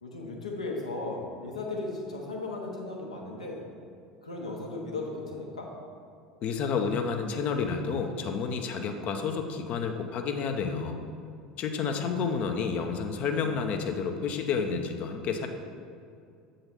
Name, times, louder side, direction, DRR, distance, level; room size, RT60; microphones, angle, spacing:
voice 1, 0.0-3.6 4.2-5.7 12.0-12.4, left 2 dB, 80° left, -1 dB, 1.1 m, -36 dB
voice 2, 6.4-11.0 11.6-15.5, left 5 dB, 40° left, 5 dB, 0.7 m, -30 dB
7.8 x 3.9 x 5.8 m, 2.4 s
figure-of-eight pair, 70°, 4 cm